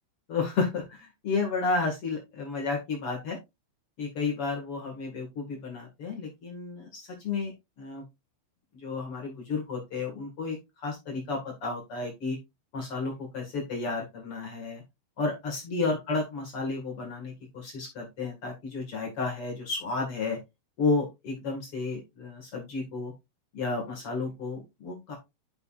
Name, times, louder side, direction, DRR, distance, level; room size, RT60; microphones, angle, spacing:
voice 1, 0.3-3.4 4.0-7.5 7.8-8.0 8.7-10.6 10.8-12.4 12.7-14.8 15.2-20.4 20.8-23.1 23.5-25.1, left 4 dB, 60° left, 1 dB, 1.5 m, -32 dB
10.5 x 5.9 x 2.5 m, 0.22 s
omnidirectional pair, 5.9 m